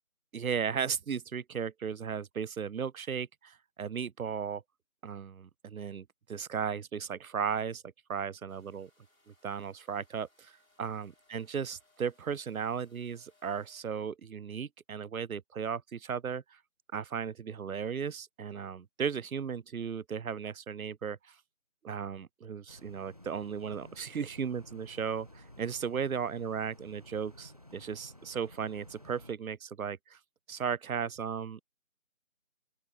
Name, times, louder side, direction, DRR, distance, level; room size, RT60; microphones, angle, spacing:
voice 1, 0.3-4.6 5.0-8.9 9.3-16.6 16.9-21.4 21.8-30.2 30.5-31.6, right 7 dB, 90° right, 0.6 m, -36 dB
sound 1, 8.5-13.8, left 2 dB, 80° left, 6.6 m, -69 dB
sound 2, 22.7-29.3, left 1 dB, 30° right, 0.9 m, -54 dB
open air
figure-of-eight pair, 175°, 41 cm